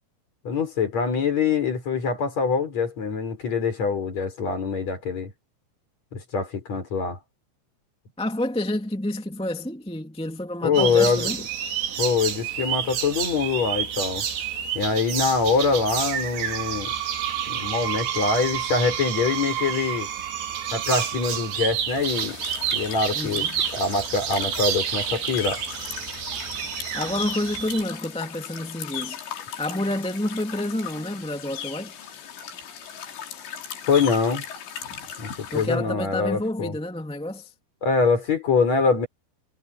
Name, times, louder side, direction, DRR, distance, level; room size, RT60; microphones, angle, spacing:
voice 1, 0.4-5.3 6.1-7.2 10.6-11.3 12.0-14.2 14.7-16.9 17.5-20.1 20.7-22.4 22.7-23.5 23.7-25.6 33.9-34.4 35.2-36.8 37.8-39.1, left 4 dB, 40° left, 5.9 m, -24 dB
voice 2, 8.2-11.4 23.1-23.6 26.9-29.2 29.6-32.0 35.5-37.5, left 1 dB, 5° left, 1.2 m, -29 dB
sound 1, 10.7-27.8, right 8 dB, 70° right, 5.1 m, -30 dB
Screech, 16.2-21.7, right 11 dB, 50° right, 3.9 m, -31 dB
sound 2, 21.9-35.7, left 8 dB, 80° left, 5.5 m, -37 dB
omnidirectional pair, 5.0 m